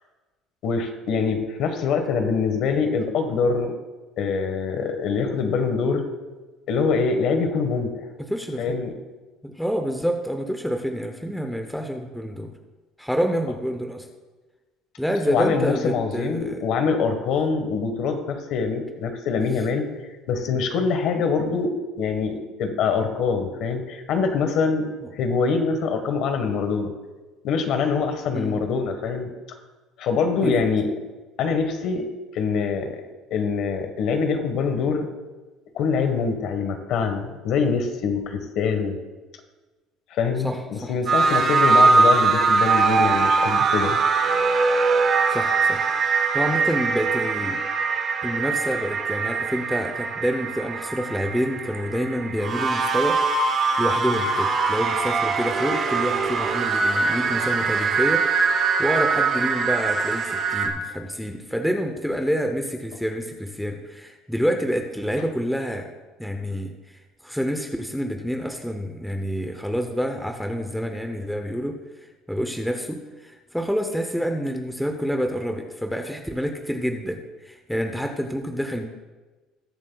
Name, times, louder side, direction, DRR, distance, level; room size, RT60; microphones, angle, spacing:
voice 1, 0.6-3.7 4.2-6.1 6.7-7.9 8.6-8.9 15.3-19.9 20.3-24.9 25.2-26.9 27.4-29.3 30.0-30.9 31.4-32.1 32.3-33.0 33.3-35.1 35.7-39.0 40.1-44.0, left 5 dB, 50° left, 6 dB, 1.3 m, -24 dB
voice 2, 8.2-8.8 9.4-12.5 13.0-14.1 15.0-16.6 25.0-25.1 28.3-28.6 30.4-30.6 40.4-41.2 45.3-45.9 46.3-47.6 48.2-53.2 53.8-65.9 66.2-78.9, equal, ahead, 4 dB, 0.7 m, -28 dB
sound 1, 41.1-60.7, right 4 dB, 35° right, 1.1 m, -22 dB
20.0 x 7.2 x 2.3 m, 1.2 s
cardioid pair, 165°, 0 cm